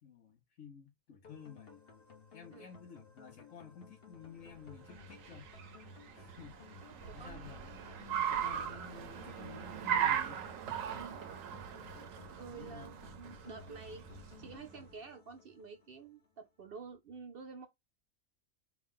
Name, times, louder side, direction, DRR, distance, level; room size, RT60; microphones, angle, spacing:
voice 1, 0.0-1.8 2.3-5.5 6.1-6.7 7.1-10.4 12.5-13.2, left 7 dB, 70° left, 1.3 m, -53 dB
sound 1, 1.2-16.3, left 4 dB, 50° left, 1.1 m, -57 dB
Car, 4.6-14.8, right 9 dB, 80° right, 1.1 m, -39 dB
voice 2, 6.9-7.4 10.9-11.2 12.3-14.0 14.4-17.7, right 5 dB, 60° right, 0.6 m, -49 dB
3.7 x 2.3 x 3.6 m
omnidirectional pair, 1.4 m